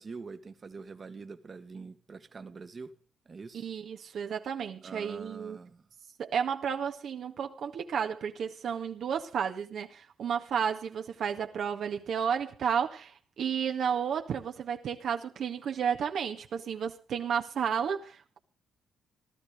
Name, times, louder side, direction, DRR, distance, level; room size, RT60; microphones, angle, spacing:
voice 1, 0.0-2.9 3.3-3.7 4.8-5.8, right 4 dB, 35° right, 1.8 m, -44 dB
voice 2, 3.5-5.6 6.2-18.4, right 7 dB, 65° right, 1.9 m, -32 dB
17.5 x 12.5 x 5.2 m
cardioid pair, 90°, 0 cm